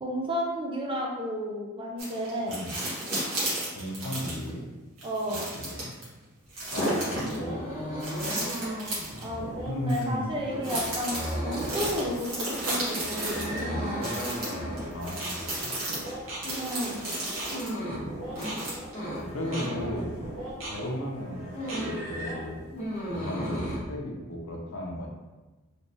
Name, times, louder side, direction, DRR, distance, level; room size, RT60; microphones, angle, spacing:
voice 1, 0.0-2.6 5.0-5.4 9.2-11.2 11.4-14.1 16.6-17.0, equal, 20° right, -2 dB, 0.5 m, -32 dB
sound 1, 2.0-4.5 5.0-6.0 6.5-7.4 8.0-9.3 9.9-10.0 10.6-13.6 14.0-17.7 18.4-19.1 19.6-19.7, right 1 dB, 80° right, 1.5 m, -33 dB
voice 2, 2.5-2.8 3.7-4.6 5.3-5.4 5.6-5.9 6.7-8.0 9.7-10.4 14.9-15.7 17.0-17.3 18.6-18.9 19.3-20.2 20.7-21.4 21.7-22.7 23.1-25.1, equal, 65° left, -1 dB, 0.7 m, -35 dB
sound 2, 6.6-22.5, right 1 dB, 60° right, 0.8 m, -41 dB
sound 3, 7.1-20.8 21.1-22.1 22.4-23.8, equal, 30° left, 1.0 m, -36 dB
3.2 x 3.2 x 2.8 m, 1.2 s
head